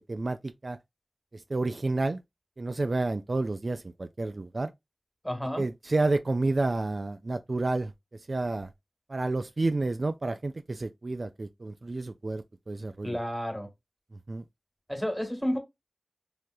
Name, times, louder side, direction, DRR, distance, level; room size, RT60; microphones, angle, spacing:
voice 1, 0.1-0.8 1.5-2.2 2.6-4.7 5.6-7.9 8.3-8.7 9.1-13.2 14.3-14.4, right 2 dB, 60° right, 0.3 m, -30 dB
voice 2, 5.2-5.6 13.0-13.7 14.9-15.6, equal, 5° left, 1.2 m, -31 dB
3.3 x 2.8 x 2.3 m
wide cardioid pair, 50°, 0 cm